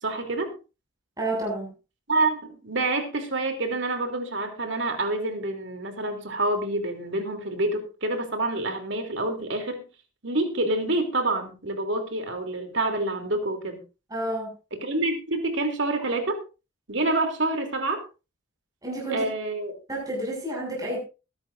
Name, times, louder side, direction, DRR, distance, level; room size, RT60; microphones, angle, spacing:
voice 1, 0.0-0.5 2.1-9.8 10.2-13.8 14.7-16.4 16.9-18.0 19.1-19.7, right 2 dB, 65° right, 3.2 m, -27 dB
voice 2, 1.2-1.7 14.1-14.5 18.8-19.3 19.9-21.0, right 1 dB, 20° right, 6.6 m, -30 dB
21.5 x 10.5 x 2.6 m
head